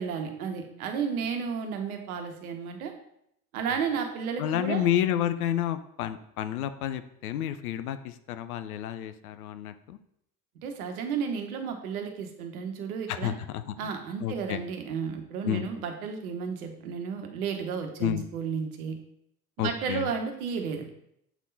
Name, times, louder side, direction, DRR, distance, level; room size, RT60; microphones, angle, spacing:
voice 1, 0.0-2.9 3.5-4.9 10.6-13.3 13.8-19.0 19.6-20.9, right 6 dB, 70° right, 4 dB, 1.2 m, -32 dB
voice 2, 4.4-10.0 13.1-13.9 14.2-14.6 15.4-15.7 18.0-18.3 19.6-20.1, left 11 dB, 75° left, 11 dB, 0.7 m, -30 dB
8.2 x 3.7 x 4.1 m, 0.74 s
hypercardioid pair, 70°, 45 cm